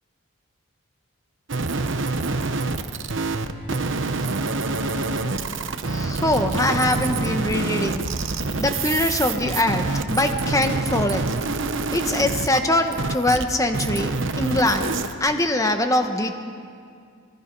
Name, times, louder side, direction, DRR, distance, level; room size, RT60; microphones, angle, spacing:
sound 1, 1.5-13.4 13.7-15.1, right 3 dB, 55° right, 1.0 m, -26 dB
voice 1, 5.8-8.1 8.6-11.3 11.9-14.9 15.2-16.3, left 1 dB, 15° left, 6 dB, 1.2 m, -23 dB
26.5 x 20.0 x 5.4 m, 2.3 s
head